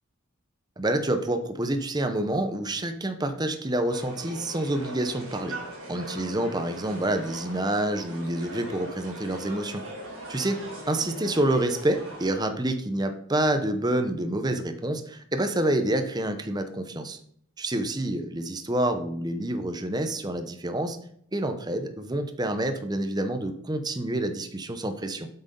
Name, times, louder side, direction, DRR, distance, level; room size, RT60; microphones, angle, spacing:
voice 1, 0.8-5.6 5.9-9.8 10.3-17.2 17.6-21.0 21.3-25.3, right 1 dB, 20° right, 7 dB, 0.8 m, -28 dB
sound 1, 3.9-12.3, right 1 dB, 80° right, 3.8 m, -40 dB
8.1 x 6.1 x 5.3 m, 0.65 s
head